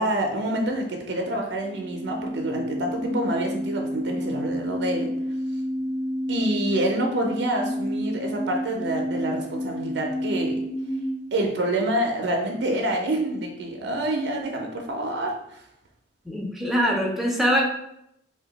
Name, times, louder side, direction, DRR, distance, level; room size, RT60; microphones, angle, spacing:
voice 1, 0.0-5.1 6.3-10.6 11.3-15.6, right 1 dB, 70° right, 2 dB, 0.5 m, -27 dB
sound 1, 1.6-11.2, equal, 80° left, 0.7 m, -30 dB
voice 2, 16.3-17.7, equal, ahead, -1 dB, 0.5 m, -23 dB
2.7 x 2.2 x 3.9 m, 0.78 s
head